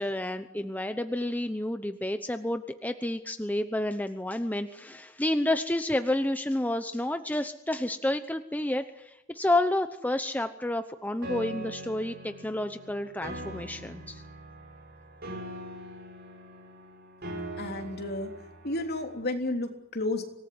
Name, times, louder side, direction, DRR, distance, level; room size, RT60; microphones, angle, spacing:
voice 1, 0.0-14.2, left 1 dB, 10° left, 8 dB, 0.9 m, -30 dB
Piano, 11.2-19.2, right 1 dB, 50° right, 6.1 m, -42 dB
voice 2, 17.6-18.3 18.6-20.2, left 2 dB, 50° left, 3 dB, 3.4 m, -31 dB
25.5 x 19.0 x 9.6 m, 0.89 s
head